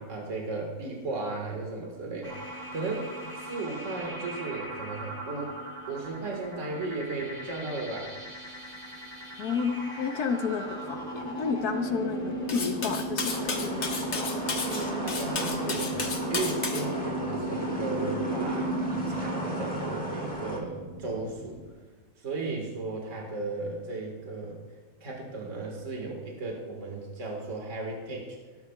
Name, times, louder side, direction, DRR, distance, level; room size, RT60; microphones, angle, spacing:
voice 1, 0.0-5.6 5.9-8.2 14.6-21.6 22.2-24.6 25.0-28.4, right 3 dB, 55° right, 0 dB, 2.1 m, -35 dB
sound 1, 2.2-21.7, right 1 dB, 15° right, 3.0 m, -36 dB
voice 2, 9.4-14.1, left 6 dB, 85° left, 6 dB, 1.5 m, -31 dB
Cutlery silverware, 12.5-16.9, left 4 dB, 50° left, 1.5 m, -33 dB
sound 2, 13.2-20.6, equal, 5° left, 1.8 m, -37 dB
18.0 x 12.0 x 2.4 m, 1.4 s
omnidirectional pair, 1.6 m